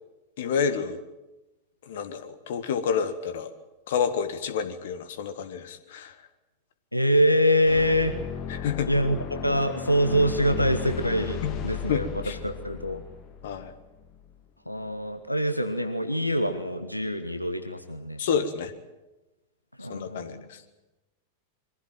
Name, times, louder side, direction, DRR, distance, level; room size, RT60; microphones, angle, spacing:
voice 1, 0.4-1.0 1.9-3.5 3.9-6.1 8.5-8.9 11.4-11.5 11.9-12.4 13.4-13.7 18.2-18.7 19.9-20.6, left 7 dB, 55° left, 11 dB, 1.7 m, -29 dB
voice 2, 6.9-8.2 8.9-13.0 14.7-18.2 19.8-20.5, equal, 90° left, 7 dB, 1.3 m, -25 dB
sound 1, 7.6-14.3, left 7 dB, 35° left, 2.1 m, -35 dB
23.0 x 16.0 x 9.2 m, 1.0 s
figure-of-eight pair, 90°, 0 cm